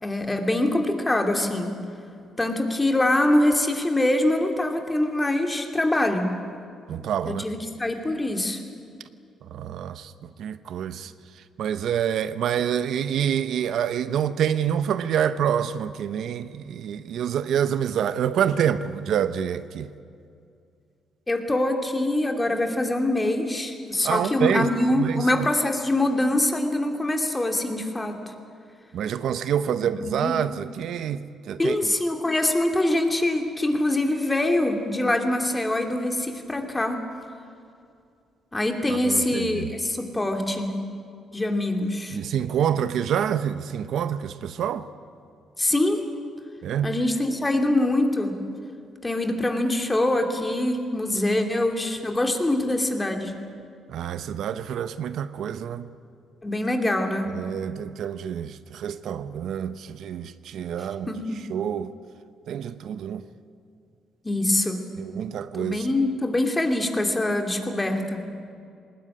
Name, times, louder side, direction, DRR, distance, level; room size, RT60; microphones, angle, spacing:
voice 1, 0.0-1.8 2.4-6.3 7.3-8.6 21.3-28.2 30.0-30.3 31.6-37.0 38.5-40.8 41.3-42.2 45.6-46.0 46.8-48.4 49.0-53.4 56.4-57.3 61.1-61.4 64.2-64.9 65.6-68.3, left 1 dB, 15° left, 2.8 m, -24 dB
voice 2, 6.9-7.4 9.4-11.1 11.6-19.9 24.0-25.5 28.9-31.9 38.9-39.7 42.1-44.9 46.6-46.9 53.9-55.9 57.3-61.1 61.5-61.9 62.5-63.3 65.0-65.9, right 9 dB, 75° right, 0.8 m, -27 dB
20.0 x 19.0 x 9.9 m
cardioid pair, 90°, 0 cm